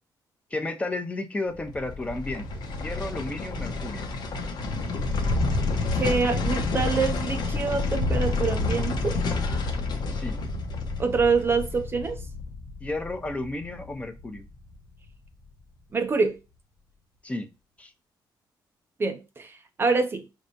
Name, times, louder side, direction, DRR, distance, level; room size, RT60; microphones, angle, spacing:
voice 1, 0.5-2.5 2.8-4.1 10.1-10.4 12.8-14.4 17.2-17.5 17.8-17.9, left 2 dB, 15° left, 0.8 m, -32 dB
sound 1, 1.5-14.7 15.0-15.1, left 3 dB, 65° left, 1.0 m, -29 dB
voice 2, 5.9-9.2 11.0-12.2 15.9-16.4 19.0-19.5 19.8-20.3, right 4 dB, 30° right, 0.5 m, -25 dB
5.0 x 3.3 x 2.7 m
cardioid pair, 125°, 8 cm